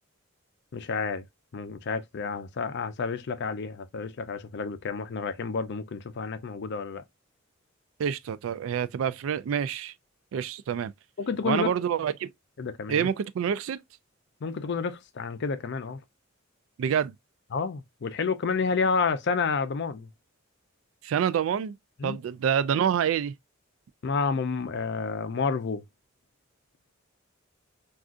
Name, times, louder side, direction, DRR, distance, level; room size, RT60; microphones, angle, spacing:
voice 1, 0.7-1.2 1.5-7.0 11.2-11.7 12.6-13.1 14.4-16.0 17.5-20.1 22.0-22.2 24.0-25.8, left 5 dB, 60° left, 0.5 m, -30 dB
voice 2, 8.0-9.9 10.3-10.9 11.4-12.3 12.9-13.8 16.8-17.2 21.0-21.8 22.0-23.3, right 8 dB, 70° right, 0.3 m, -27 dB
3.7 x 2.4 x 2.4 m
head